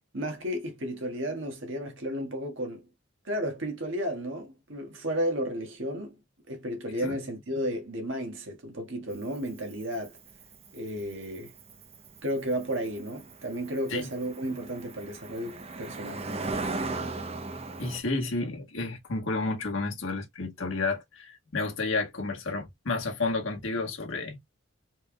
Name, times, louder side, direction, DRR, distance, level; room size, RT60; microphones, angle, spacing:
voice 1, 0.1-2.8 3.2-6.2 6.5-10.1 10.7-11.5 12.2-16.2, equal, 70° right, 1.5 m, -33 dB
Cricket, 9.1-18.0, right 3 dB, 30° right, 0.7 m, -38 dB
voice 2, 17.8-24.4, left 3 dB, 85° left, 1.4 m, -31 dB
4.4 x 3.4 x 2.2 m
head